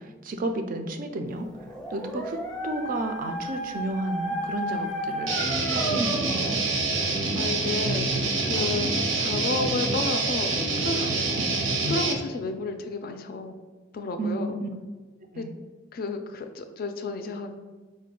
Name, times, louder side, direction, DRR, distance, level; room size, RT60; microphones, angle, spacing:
voice 1, 0.0-1.5 1.9-2.4 2.6-5.4 5.7-6.6 11.4-11.5 14.2-14.7 15.3-15.5, right 2 dB, 45° right, 6 dB, 0.3 m, -32 dB
Dog, 1.5-6.5, right 1 dB, 5° left, 0.6 m, -33 dB
Guitar, 5.3-12.1, right 3 dB, 85° right, 0.6 m, -26 dB
voice 2, 7.3-11.1 11.9-13.5 13.9-14.5 15.4-15.5 15.9-17.6, left 3 dB, 50° left, 7 dB, 0.3 m, -32 dB
4.0 x 2.2 x 3.7 m, 1.3 s
head